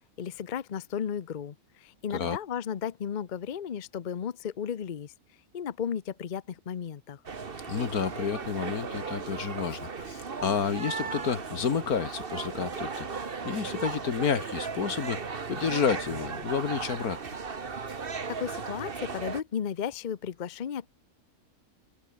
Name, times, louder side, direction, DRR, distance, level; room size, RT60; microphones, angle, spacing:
voice 1, 0.2-5.1 5.5-7.2 18.3-20.9, left 8 dB, 45° left, 0.7 m, -34 dB
sound 1, 7.3-19.4, right 5 dB, 40° right, 1.6 m, -36 dB
voice 2, 7.7-17.2, left 6 dB, 80° left, 2.1 m, -30 dB
omnidirectional pair, 1.5 m